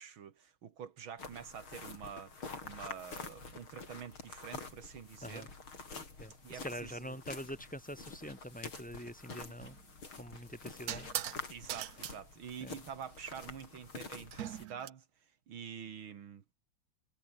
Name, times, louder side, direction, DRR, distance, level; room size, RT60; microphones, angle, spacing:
voice 1, 0.0-2.4 2.6-5.5 6.4-7.2 11.5-15.0 15.5-16.4, right 8 dB, 80° right, 2.4 m, -47 dB
sound 1, 1.2-14.7, left 4 dB, 80° left, 5.5 m, -48 dB
voice 2, 6.2-9.8 10.2-11.1 12.6-12.8, equal, 5° left, 7.2 m, -45 dB
sound 2, 9.6-9.8 10.9-11.4 11.7-12.2 14.3-14.9, right 11 dB, 60° right, 1.1 m, -40 dB
omnidirectional pair, 2.2 m